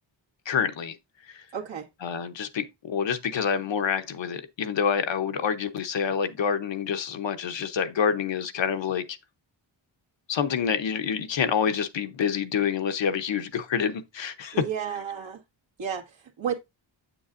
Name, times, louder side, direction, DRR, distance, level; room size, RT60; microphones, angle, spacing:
voice 1, 0.5-1.0 1.3-1.4 2.0-9.2 10.3-14.6, left 7 dB, 70° left, 0.9 m, -27 dB
voice 2, 1.5-1.9 14.5-15.4 15.8-16.5, right 8 dB, 75° right, 1.7 m, -32 dB
7.8 x 7.0 x 2.5 m
wide cardioid pair, 100°, 46 cm